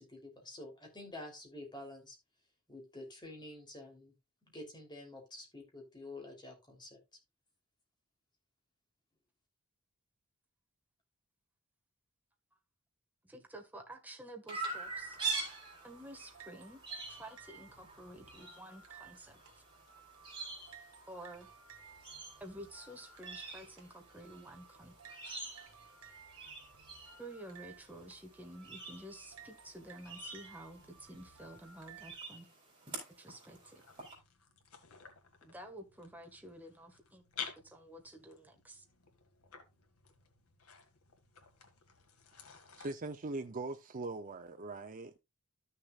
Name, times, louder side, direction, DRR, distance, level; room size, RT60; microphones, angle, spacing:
voice 1, 0.0-2.2 2.7-4.1 4.5-7.0, left 2 dB, 20° left, 3.2 m, -49 dB
voice 2, 13.2-15.2 15.8-16.8 17.1-19.4 21.1-21.5 22.4-24.9 27.2-32.4 33.2-33.8 35.4-37.2 37.6-38.8, right 1 dB, 10° right, 1.6 m, -51 dB
Chirp tweet, 14.5-34.1, right 4 dB, 25° right, 4.2 m, -46 dB
sound 1, 14.9-32.1, right 6 dB, 80° right, 2.3 m, -58 dB
sound 2, 33.6-42.9, left 7 dB, 85° left, 1.8 m, -52 dB
voice 3, 42.8-45.2, right 2 dB, 40° right, 0.7 m, -41 dB
13.0 x 6.8 x 2.4 m
head